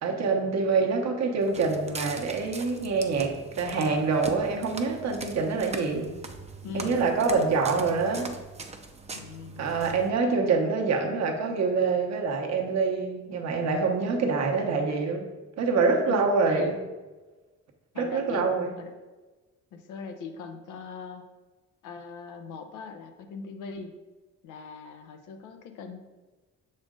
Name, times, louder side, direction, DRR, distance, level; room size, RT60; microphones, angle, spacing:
voice 1, 0.0-6.1 6.7-8.4 9.6-15.3 15.6-16.8 18.0-18.7, right 4 dB, 60° right, 2 dB, 1.1 m, -26 dB
Walk footsteps, 1.4-10.1, right 4 dB, 20° right, 0.6 m, -41 dB
voice 2, 6.6-7.1 9.1-9.6 16.1-16.7 17.9-18.5 18.8-18.9 19.7-21.2 21.8-23.9 24.4-26.0, left 5 dB, 90° left, 6 dB, 0.8 m, -40 dB
6.2 x 4.3 x 3.7 m, 1.2 s
cardioid pair, 90°, 30 cm